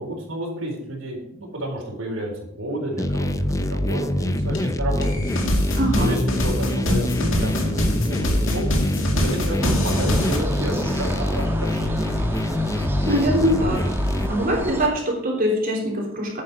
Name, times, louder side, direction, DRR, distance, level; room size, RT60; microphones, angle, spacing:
voice 1, 0.0-2.3 2.6-5.1 5.9-8.8 9.2-12.1, right 1 dB, 85° right, -2 dB, 4.3 m, -31 dB
sound 1, 3.0-14.3, left 1 dB, 15° left, 0.5 m, -24 dB
sound 2, 4.5-4.6 5.0-10.4, equal, 75° left, 2.3 m, -25 dB
voice 2, 5.8-6.2 13.1-13.9 14.3-16.4, equal, 45° right, 0 dB, 3.4 m, -22 dB
sound 3, 9.6-14.9, equal, 10° right, 1.4 m, -30 dB
10.0 x 8.9 x 4.9 m, 0.80 s
head